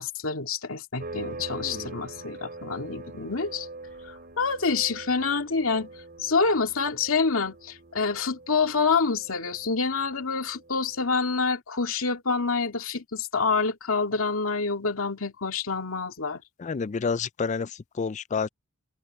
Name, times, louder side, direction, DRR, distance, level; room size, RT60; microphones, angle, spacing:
voice 1, 0.0-3.7 4.4-5.9 6.2-16.4, left 4 dB, 80° left, 2.3 m, -27 dB
sound 1, 1.0-11.3, right 2 dB, 45° right, 3.6 m, -43 dB
voice 2, 16.6-18.5, left 5 dB, 35° left, 0.4 m, -29 dB
head